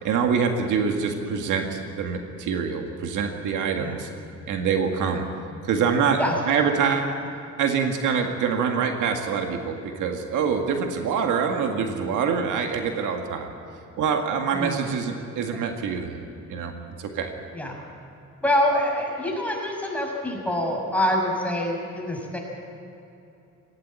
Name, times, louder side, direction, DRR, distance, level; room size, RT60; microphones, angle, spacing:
voice 1, 0.0-4.1 4.5-5.2 5.6-6.2 6.5-7.1 7.6-13.5 14.0-16.2 16.5-16.7 17.0-17.3, right 6 dB, 85° right, 4 dB, 1.9 m, -25 dB
voice 2, 6.1-6.5 14.5-15.0 17.5-17.8 18.4-22.4, left 1 dB, 5° left, -1 dB, 6.2 m, -26 dB
18.5 x 17.0 x 8.9 m, 2.8 s
cardioid pair, 90°, 30 cm